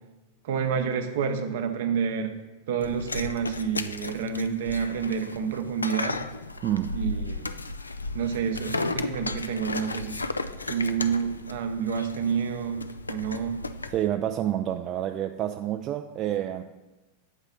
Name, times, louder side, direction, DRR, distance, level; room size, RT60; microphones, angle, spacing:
voice 1, 0.4-2.3 2.7-6.2 6.9-7.5 8.1-10.4 10.7-13.7, right 6 dB, 55° right, 7 dB, 0.7 m, -29 dB
sound 1, 2.8-14.1, left 2 dB, 80° left, 0.3 m, -34 dB
voice 2, 6.6-7.0 13.9-16.6, right 11 dB, 35° right, 5 dB, 0.3 m, -28 dB
8.1 x 4.0 x 5.3 m, 1.1 s
figure-of-eight pair, 90°, 0 cm